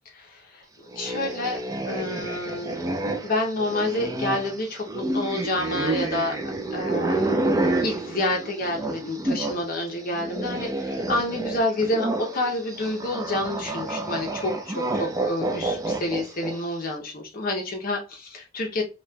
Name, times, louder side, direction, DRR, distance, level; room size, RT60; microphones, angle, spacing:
voice 1, 0.1-0.6 1.0-1.6 1.9-2.9 3.2-6.4 6.7-18.8, left 1 dB, 50° left, 1 dB, 0.7 m, -29 dB
sound 1, 0.9-9.6 9.9-16.7, right 2 dB, 20° right, 0.4 m, -29 dB
4.0 x 2.2 x 2.2 m, 0.30 s
head